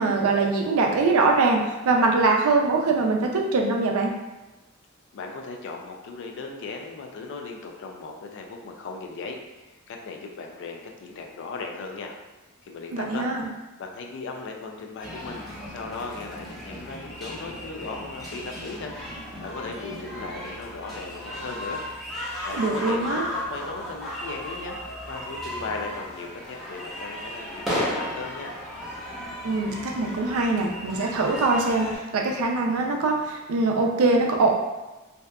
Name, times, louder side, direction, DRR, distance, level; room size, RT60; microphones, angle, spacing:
voice 1, 0.0-4.1 12.9-13.5 22.6-23.3 29.4-34.5, right 3 dB, 80° right, 1 dB, 0.4 m, -23 dB
voice 2, 5.1-12.2 12.6-13.3 13.8-18.9 19.4-21.8 22.5-24.8 25.1-28.6, left 4 dB, 60° left, 2 dB, 0.3 m, -37 dB
sound 1, 15.0-32.0, equal, ahead, 0.6 m, -35 dB
2.6 x 2.3 x 2.2 m, 1.1 s
head